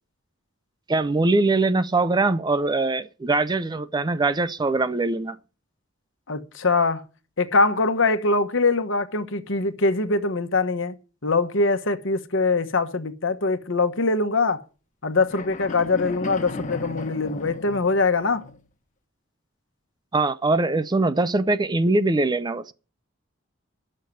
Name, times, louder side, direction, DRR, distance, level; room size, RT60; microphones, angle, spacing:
voice 1, 0.9-5.4 20.1-22.7, right 2 dB, 20° right, 0.5 m, -22 dB
voice 2, 6.3-7.0 7.4-14.6 15.0-18.4, left 3 dB, 70° left, 1.2 m, -23 dB
sound 1, 15.3-18.6, left 2 dB, 40° left, 1.2 m, -36 dB
11.0 x 6.6 x 9.1 m
head